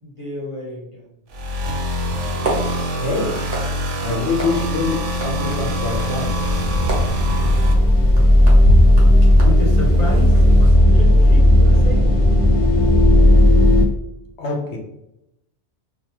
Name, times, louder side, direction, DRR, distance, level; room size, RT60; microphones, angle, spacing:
voice 1, 0.0-1.1 9.4-12.1, equal, 30° right, -6 dB, 0.9 m, -30 dB
sound 1, 1.3-7.7, equal, 90° right, 0.9 m, -25 dB
sound 2, 2.1-10.7, equal, 60° right, 1.0 m, -28 dB
voice 2, 3.0-3.3 4.0-5.0 5.2-6.6 14.4-14.8, left 3 dB, 75° left, 0 dB, 0.9 m, -24 dB
sound 3, 5.3-13.8, left 1 dB, 40° left, 0.5 m, -14 dB
2.6 x 2.2 x 2.9 m, 0.83 s
omnidirectional pair, 1.2 m